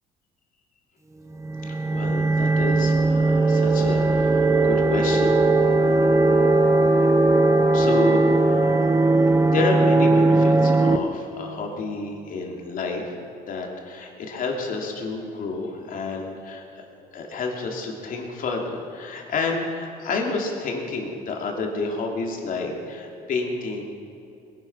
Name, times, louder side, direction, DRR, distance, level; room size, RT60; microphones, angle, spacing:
sound 1, 1.4-11.0, right 2 dB, 15° right, 0.9 m, -19 dB
voice 1, 1.6-5.3 5.7-6.0 7.7-8.2 8.5-8.7 9.4-13.2 13.5-16.8 17.1-23.8, left 3 dB, 55° left, 1 dB, 2.9 m, -29 dB
21.0 x 10.0 x 6.2 m, 2.8 s
cardioid pair, 110°, 17 cm